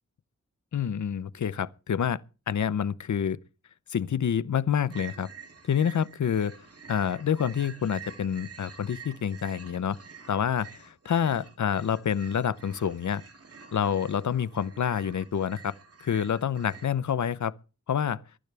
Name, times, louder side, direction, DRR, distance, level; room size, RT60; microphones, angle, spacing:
voice 1, 0.7-2.2 2.5-3.4 3.9-5.3 5.6-6.6 6.9-10.0 10.3-13.2 13.7-15.7 16.0-17.5 17.9-18.2, left 8 dB, 75° left, 0.8 m, -27 dB
sound 1, 4.9-16.9, right 6 dB, 55° right, 2.5 m, -48 dB
22.5 x 12.0 x 3.4 m
wide cardioid pair, 95°, 29 cm